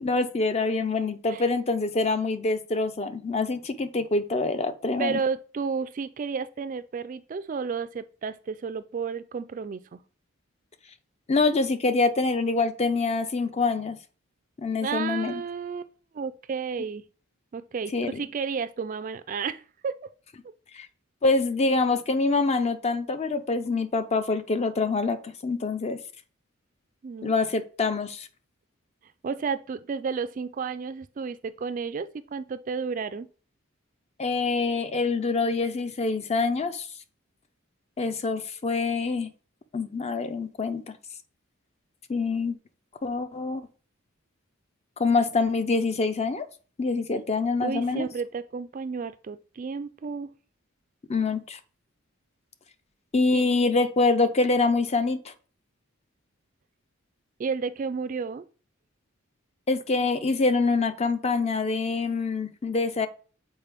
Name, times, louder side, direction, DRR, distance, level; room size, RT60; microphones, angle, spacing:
voice 1, 0.0-5.2 11.3-14.0 14.6-15.4 17.9-18.2 20.7-20.9 21.2-26.0 27.2-28.3 34.2-36.9 38.0-39.3 39.7-40.9 42.1-42.6 43.0-43.6 45.0-46.5 46.8-48.1 51.1-51.6 53.1-55.3 59.7-63.1, left 3 dB, 30° left, 0.5 m, -25 dB
voice 2, 5.0-10.0 14.8-17.0 17.5-20.0 27.0-27.3 29.2-33.3 47.6-50.3 53.3-53.4 57.4-58.4, right 5 dB, 40° right, 0.3 m, -32 dB
7.3 x 4.4 x 3.4 m
head